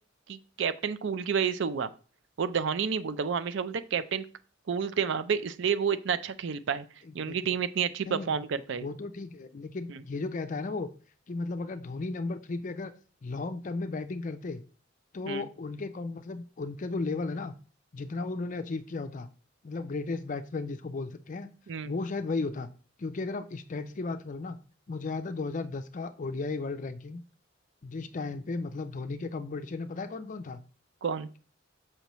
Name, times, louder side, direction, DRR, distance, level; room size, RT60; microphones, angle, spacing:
voice 1, 0.3-1.9 2.4-4.3 4.7-6.8 7.1-8.9 9.9-10.0 15.3-15.4 21.7-21.9 31.0-31.3, right 6 dB, 65° right, 13 dB, 0.4 m, -30 dB
voice 2, 7.0-7.6 8.1-8.3 8.8-10.9 11.3-12.9 13.2-14.6 15.1-17.5 17.9-19.3 19.6-21.5 21.8-22.7 23.0-24.6 24.9-27.2 27.8-30.6, left 3 dB, 40° left, 10 dB, 0.5 m, -35 dB
6.6 x 5.6 x 3.0 m, 0.38 s
head